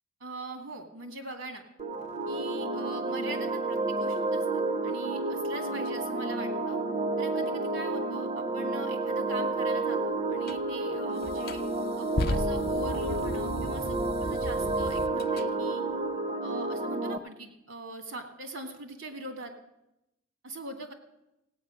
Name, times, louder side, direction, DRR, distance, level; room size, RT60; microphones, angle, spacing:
voice 1, 0.2-1.7 2.3-6.8 7.2-11.6 12.0-15.8 16.4-19.5 20.4-20.9, right 2 dB, 70° right, 5 dB, 2.1 m, -42 dB
sound 1, 1.8-17.2, right 2 dB, 35° right, 0.6 m, -30 dB
sound 2, 10.5-10.6 11.2-15.5, left 2 dB, 50° left, 0.6 m, -35 dB
17.0 x 8.8 x 6.3 m, 0.90 s
head